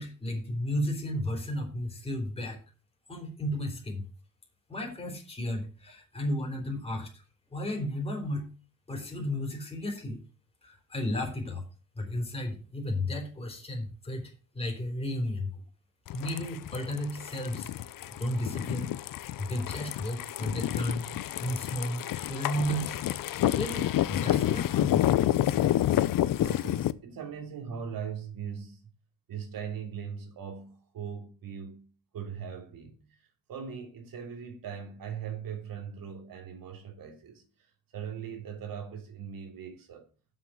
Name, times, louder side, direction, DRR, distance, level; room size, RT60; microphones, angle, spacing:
voice 1, 0.0-2.6 3.1-4.0 4.7-7.2 7.5-8.5 8.9-10.2 10.6-11.6 12.0-15.6 16.1-18.9 19.4-21.1 21.4-23.0 23.5-25.0, left 1 dB, 15° left, 3.7 m, -33 dB
sound 1, 16.1-26.9, left 13 dB, 75° left, 0.6 m, -29 dB
voice 2, 26.4-28.8 29.3-31.9 32.1-40.1, right 7 dB, 90° right, 2.8 m, -40 dB
7.1 x 7.1 x 7.6 m
wide cardioid pair, 135°, 33 cm